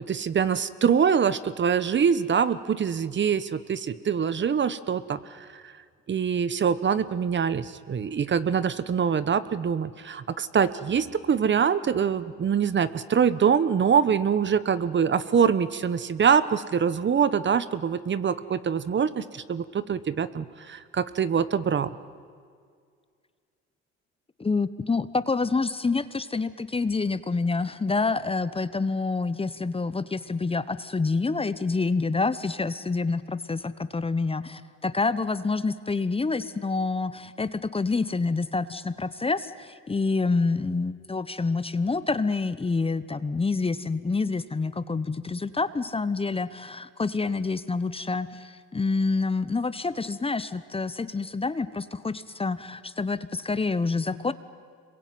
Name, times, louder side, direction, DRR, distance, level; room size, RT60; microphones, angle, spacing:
voice 1, 0.0-5.2 5.6-5.7 6.1-21.9, right 7 dB, 40° right, 15 dB, 1.2 m, -24 dB
voice 2, 24.4-54.3, left 3 dB, 20° left, 14 dB, 1.0 m, -27 dB
26.5 x 22.5 x 9.5 m, 2.1 s
supercardioid pair, 80°, 29 cm